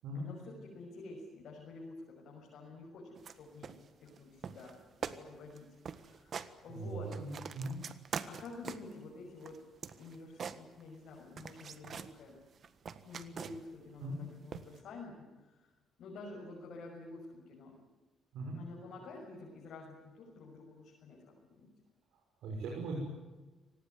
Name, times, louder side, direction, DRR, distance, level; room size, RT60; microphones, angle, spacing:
voice 1, 0.1-7.2 8.3-12.4 13.0-15.7 16.0-17.8 18.5-21.7, left 3 dB, 70° left, -2 dB, 6.3 m, -50 dB
sound 1, 3.2-3.4 3.6-4.2 4.4-4.7 5.0-5.2 5.5-5.6 5.8-6.5 6.9-9.0 9.4-11.1 11.4-12.1 12.5-13.8 14.5-14.8, right 6 dB, 50° right, 1.5 m, -43 dB
voice 2, 6.7-7.8 14.0-14.2 18.3-18.6 22.4-23.0, right 2 dB, 80° right, -1 dB, 6.3 m, -39 dB
25.0 x 19.5 x 9.6 m, 1.2 s
cardioid pair, 105°, 0 cm